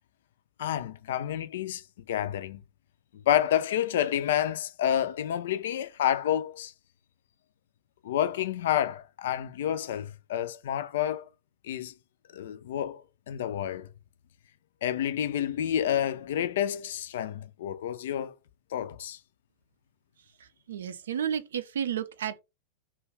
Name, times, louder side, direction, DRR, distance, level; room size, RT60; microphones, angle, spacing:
voice 1, 0.6-2.6 3.3-6.7 8.0-11.3 11.6-11.9 12.3-13.9 14.8-18.3 18.7-19.2, left 10 dB, 60° left, 0.3 m, -29 dB
voice 2, 20.4-22.4, right 9 dB, 65° right, 0.4 m, -32 dB
2.5 x 2.2 x 3.2 m
figure-of-eight pair, 90°, 0 cm